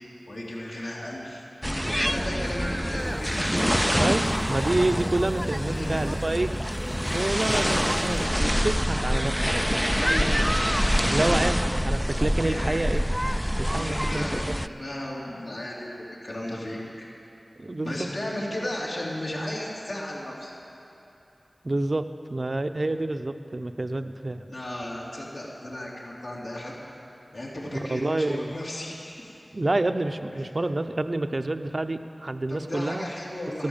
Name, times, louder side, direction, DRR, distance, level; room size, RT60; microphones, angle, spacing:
voice 1, 0.3-1.4 1.8-3.3 5.5-6.0 9.9-10.3 12.5-12.9 13.7-17.1 17.8-20.5 24.5-26.7 27.3-29.3 32.5-33.7, left 1 dB, 75° left, -6 dB, 3.2 m, -34 dB
sound 1, 1.6-14.7, equal, ahead, 0.3 m, -26 dB
sound 2, 3.0-8.3, left 1 dB, 55° left, 2.5 m, -43 dB
voice 2, 4.0-6.5 7.1-9.4 11.1-13.0 13.6-14.6 17.6-18.1 21.6-22.0 22.3-24.4 27.7-28.6 29.5-33.1 33.6-33.7, right 2 dB, 50° right, 8 dB, 0.6 m, -28 dB
13.5 x 12.0 x 7.2 m, 2.8 s
wide cardioid pair, 60°, 0 cm